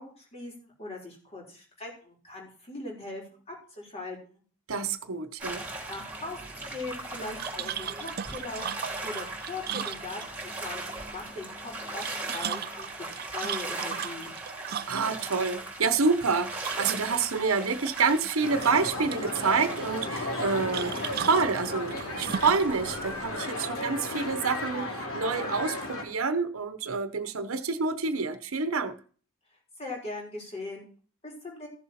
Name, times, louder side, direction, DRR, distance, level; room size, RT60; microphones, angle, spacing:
voice 1, 0.0-4.4 5.9-13.1 13.3-14.3 29.8-30.9 31.2-31.7, left 2 dB, 30° left, 4.0 m, -40 dB
voice 2, 4.7-5.6 14.9-28.9, right 4 dB, 85° right, 1.0 m, -28 dB
sound 1, 5.4-23.3, right 2 dB, 10° right, 3.1 m, -39 dB
sound 2, 7.4-10.5 11.8-15.2 16.6-17.3 17.6-18.3 18.6-19.5 20.7-22.7, right 9 dB, 45° right, 0.4 m, -36 dB
sound 3, 18.4-26.0, left 2 dB, 80° left, 2.9 m, -34 dB
15.0 x 7.1 x 4.3 m
head